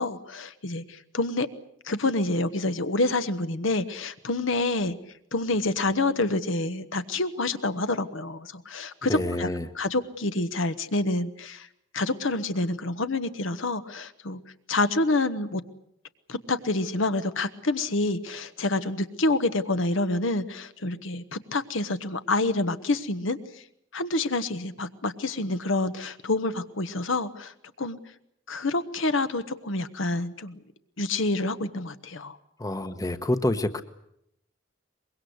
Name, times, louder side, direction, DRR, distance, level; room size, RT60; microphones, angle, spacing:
voice 1, 0.0-1.5 1.8-4.9 5.3-9.5 9.7-11.7 11.9-14.4 14.7-15.6 16.3-23.6 23.9-27.5 27.8-28.0 28.5-30.6 31.0-32.4, left 2 dB, 70° left, 11 dB, 1.2 m, -27 dB
voice 2, 9.1-9.7 32.6-33.8, left 1 dB, 15° left, 10 dB, 1.0 m, -27 dB
24.0 x 22.0 x 7.9 m, 0.74 s
head